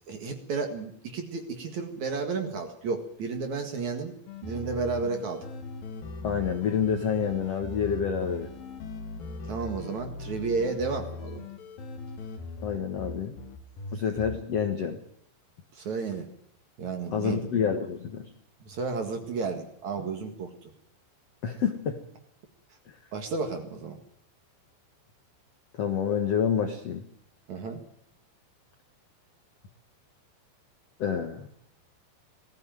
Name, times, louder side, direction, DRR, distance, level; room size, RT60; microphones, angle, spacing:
voice 1, 0.1-4.1 4.4-5.5 9.4-11.4 15.7-16.3 16.8-17.5 18.6-20.7 23.1-24.0 27.5-27.8, right 4 dB, 50° right, 5 dB, 2.5 m, -32 dB
sound 1, 4.3-14.7, left 3 dB, 55° left, 3.5 m, -40 dB
voice 2, 6.2-8.5 12.6-13.3 13.9-15.0 17.1-18.3 21.4-22.0 25.8-27.0 31.0-31.5, left 7 dB, 80° left, 6 dB, 1.4 m, -28 dB
20.0 x 15.5 x 9.1 m, 0.71 s
omnidirectional pair, 5.3 m